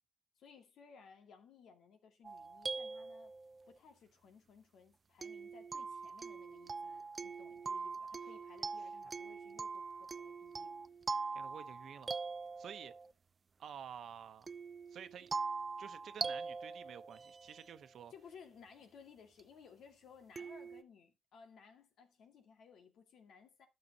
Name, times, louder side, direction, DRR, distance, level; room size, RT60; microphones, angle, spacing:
voice 1, 0.4-3.3 3.7-10.7 18.1-23.7, left 6 dB, 85° left, 2.1 m, -59 dB
sound 1, 2.2-3.7 5.2-13.1 14.5-17.8 19.4-19.5 20.4-20.8, right 4 dB, 35° right, 0.5 m, -43 dB
voice 2, 11.3-12.1 12.6-12.9 13.6-14.5 14.9-15.3 15.8-18.1, right 8 dB, 75° right, 0.9 m, -50 dB
12.5 x 6.7 x 2.9 m
cardioid pair, 95°, 0 cm